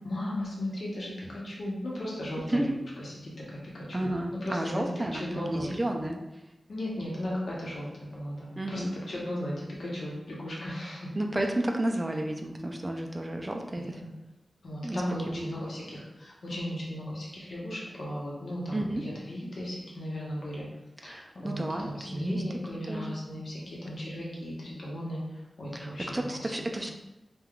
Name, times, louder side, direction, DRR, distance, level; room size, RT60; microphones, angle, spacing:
voice 1, 0.0-2.7 3.0-4.0 4.4-4.8 5.1-5.7 6.7-11.1 13.7-14.1 14.6-20.7 21.0-26.6, left 1 dB, 75° left, -4 dB, 0.8 m, -36 dB
voice 2, 3.9-6.2 8.6-9.0 11.2-14.0 14.8-15.0 15.3-15.6 18.7-19.0 21.0-22.4 22.9-23.1 25.7-26.9, right 1 dB, 20° right, 2 dB, 0.3 m, -32 dB
3.5 x 2.2 x 2.3 m, 1.0 s
wide cardioid pair, 90°, 0 cm